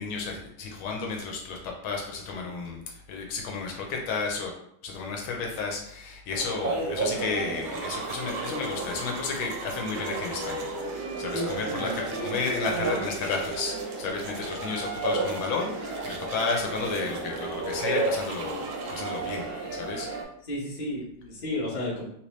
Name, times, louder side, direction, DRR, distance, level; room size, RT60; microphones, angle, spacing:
voice 1, 0.0-4.5 4.8-19.4 19.7-20.1, left 4 dB, 75° left, 1 dB, 1.4 m, -32 dB
sound 1, 6.3-20.2, right 3 dB, 50° right, 0.6 m, -33 dB
sound 2, 7.6-19.5, right 6 dB, 85° right, 1.5 m, -43 dB
voice 2, 11.3-12.3 20.5-22.0, left 1 dB, 35° left, -6 dB, 0.7 m, -33 dB
3.3 x 2.9 x 3.1 m, 0.72 s
omnidirectional pair, 2.4 m